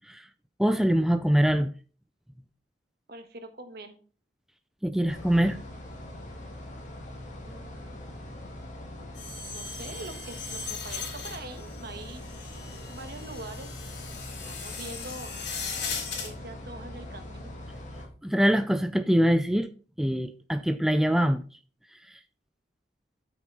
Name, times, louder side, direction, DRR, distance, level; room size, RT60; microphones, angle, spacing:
voice 1, 0.6-1.7 4.8-5.6 18.2-19.7 20.0-21.4, equal, ahead, 0.4 m, -23 dB
voice 2, 3.1-4.0 7.4-8.0 9.5-13.7 14.3-15.3 15.7-17.5, right 2 dB, 60° right, 1.5 m, -44 dB
sound 1, 5.1-18.1, left 1 dB, 40° left, 2.4 m, -42 dB
sound 2, 9.2-16.3, left 5 dB, 65° left, 3.4 m, -38 dB
12.5 x 6.1 x 3.9 m
head